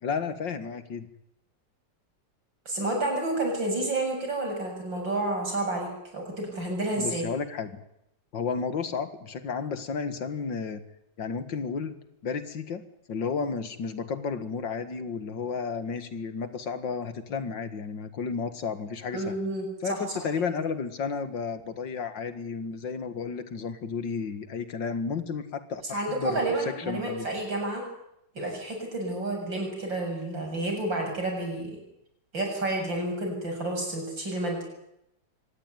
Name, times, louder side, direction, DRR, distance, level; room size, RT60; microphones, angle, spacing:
voice 1, 0.0-1.1 7.0-7.8 8.3-10.8 11.2-12.0 12.2-19.4 19.8-27.3, left 5 dB, 80° left, 10 dB, 2.5 m, -32 dB
voice 2, 2.7-7.3 19.1-20.0 25.9-27.8 28.3-31.8 32.3-34.6, right 2 dB, 85° right, 2 dB, 8.2 m, -30 dB
24.5 x 19.0 x 9.3 m, 0.81 s
omnidirectional pair, 2.0 m